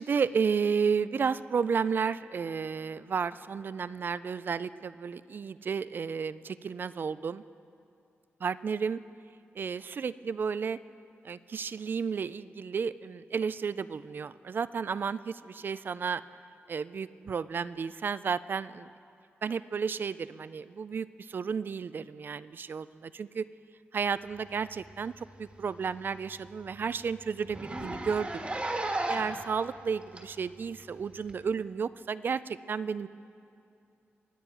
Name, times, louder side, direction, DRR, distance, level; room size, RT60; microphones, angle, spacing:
voice 1, 0.0-7.4 8.4-9.0 9.6-10.8 11.2-16.2 16.7-18.9 19.4-23.5 23.9-28.5 29.1-33.1, right 6 dB, 50° right, 16 dB, 0.3 m, -32 dB
Zipper (clothing), 24.8-25.0 25.4-25.5 25.8-25.9 26.3-26.4 26.6-26.8 27.5-29.4 30.2-30.3 31.3-31.4, right 2 dB, 30° right, 1.5 m, -34 dB
23.5 x 9.5 x 4.7 m, 2.6 s
wide cardioid pair, 110°, 4 cm